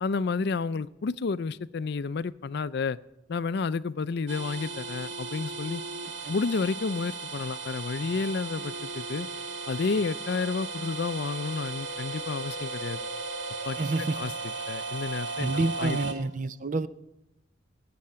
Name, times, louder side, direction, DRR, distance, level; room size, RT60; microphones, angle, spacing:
voice 1, 0.0-3.0 3.3-5.8 6.3-9.3 9.7-13.0 13.6-16.0, left 4 dB, 60° left, 0.4 m, -31 dB
sound 1, 4.3-16.1, right 3 dB, 85° right, 1.7 m, -36 dB
voice 2, 13.8-14.2 15.4-16.9, right 2 dB, 45° right, 0.6 m, -28 dB
17.5 x 7.8 x 8.5 m
head